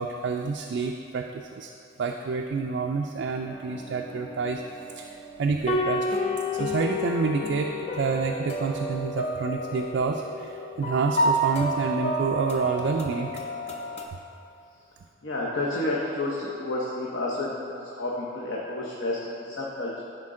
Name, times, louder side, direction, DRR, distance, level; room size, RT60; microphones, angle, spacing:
voice 1, 0.0-1.7 2.0-4.6 4.9-6.1 6.5-13.4, right 4 dB, 60° right, 2 dB, 0.3 m, -28 dB
sound 1, 3.5-14.1, equal, 30° left, 0.5 m, -30 dB
voice 2, 15.2-20.0, left 2 dB, 65° left, -4 dB, 0.8 m, -30 dB
10.5 x 4.3 x 3.7 m, 2.7 s
head